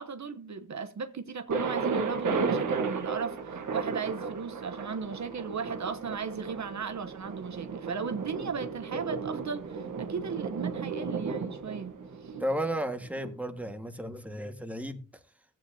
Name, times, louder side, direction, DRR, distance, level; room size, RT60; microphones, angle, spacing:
voice 1, 0.0-11.9 12.2-12.3, right 5 dB, 65° right, 1.0 m, -36 dB
Thunder, 1.5-13.3, right 5 dB, 80° right, 1.4 m, -34 dB
voice 2, 12.4-15.0, right 1 dB, 5° right, 1.7 m, -33 dB
15.0 x 8.9 x 2.8 m
cardioid pair, 65°, 31 cm